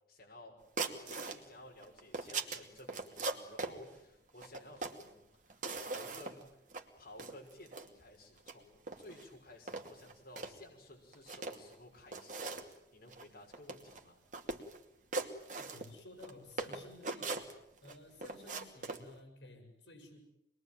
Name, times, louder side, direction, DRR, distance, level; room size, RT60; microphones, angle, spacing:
voice 1, 0.1-0.6 0.9-6.5 7.0-14.2, left 1 dB, 55° left, -1 dB, 6.1 m, -55 dB
sound 1, 0.8-1.4 1.8-3.8 4.4-5.1 5.5-6.4 6.7-6.8 7.2-7.9 8.4-8.5 8.9-9.2 9.7-10.5 11.1-11.7 12.1-12.7 13.1-13.2 13.5-14.0 14.3-14.8 15.1-16.3 16.6-17.9 18.2-19.0, right 3 dB, 45° right, 2.5 m, -40 dB
voice 2, 15.6-17.5 17.8-20.2, left 2 dB, 75° left, 5 dB, 6.4 m, -54 dB
26.5 x 21.5 x 9.2 m, 0.81 s
head